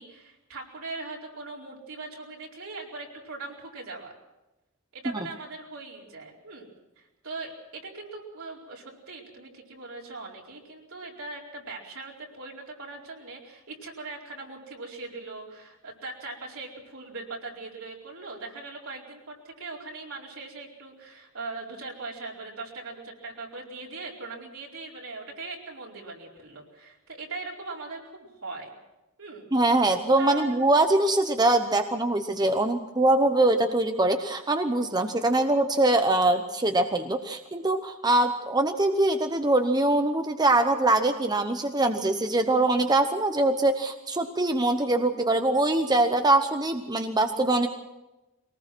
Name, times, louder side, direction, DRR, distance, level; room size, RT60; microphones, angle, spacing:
voice 1, 0.0-4.1 4.9-6.7 7.0-28.7 29.2-29.5 30.2-30.5, right 3 dB, 70° right, -1 dB, 4.6 m, -40 dB
voice 2, 29.5-47.7, right 2 dB, 20° right, 7 dB, 0.9 m, -23 dB
23.0 x 19.0 x 6.2 m, 1.0 s
head